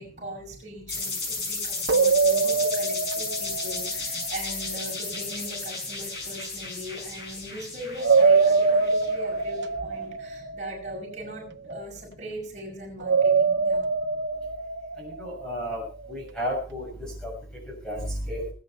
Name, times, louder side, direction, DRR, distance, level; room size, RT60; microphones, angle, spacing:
voice 1, 0.0-13.9, equal, 40° right, -2 dB, 5.9 m, -40 dB
sound 1, 0.9-9.4, left 3 dB, 70° left, 5.7 m, -34 dB
sound 2, 1.9-4.8 8.0-11.3 13.0-15.8, right 4 dB, 80° right, 0.9 m, -24 dB
voice 2, 15.0-15.8 16.1-16.9 17.2-17.3 17.8-18.4, equal, 5° left, -2 dB, 6.5 m, -32 dB
20.0 x 9.5 x 4.6 m, 0.41 s
head